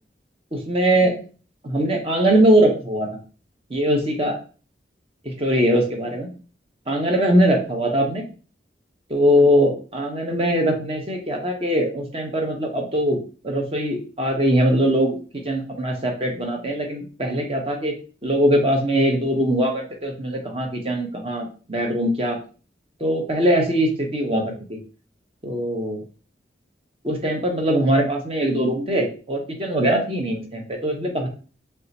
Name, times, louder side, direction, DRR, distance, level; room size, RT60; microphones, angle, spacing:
voice 1, 0.5-1.2 1.6-3.1 3.7-4.4 5.2-6.3 6.9-8.2 9.1-15.2 15.4-18.0 18.2-22.4 23.0-24.8 25.4-26.0 27.0-31.3, equal, 35° right, 2 dB, 0.9 m, -21 dB
3.3 x 2.8 x 4.0 m, 0.37 s
head